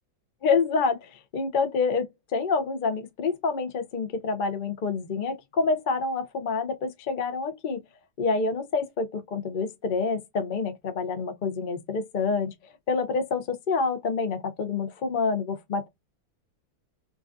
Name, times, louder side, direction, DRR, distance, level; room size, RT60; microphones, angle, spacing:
voice 1, 0.4-7.8 8.2-12.5 12.9-15.9, left 4 dB, 75° left, 0.4 m, -27 dB
3.8 x 2.4 x 2.6 m
omnidirectional pair, 2.1 m